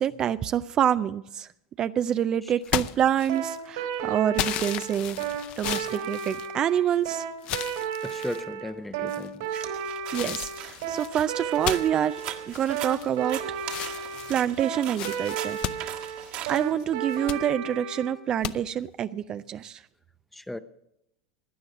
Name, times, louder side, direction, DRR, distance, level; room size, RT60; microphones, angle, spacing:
voice 1, 0.0-1.5 1.8-5.2 5.6-7.2 10.1-12.2 12.5-13.4 13.8-13.9 14.3-15.9 16.5-19.8, right 10 dB, 35° right, 0.4 m, -27 dB
sound 1, 2.6-3.7 4.4-7.0 7.4-8.4 9.1-9.5 10.1-13.3 13.6-16.6 17.0-17.4 18.4-18.5, left 13 dB, 50° left, 0.6 m, -34 dB
sound 2, 3.3-18.1, right 8 dB, 75° right, 3.0 m, -33 dB
voice 2, 8.0-9.5 20.3-20.6, left 1 dB, 5° left, 0.7 m, -36 dB
sound 3, 9.5-17.2, right 11 dB, 55° right, 1.6 m, -40 dB
16.5 x 10.5 x 5.9 m
hypercardioid pair, 110°, 2 cm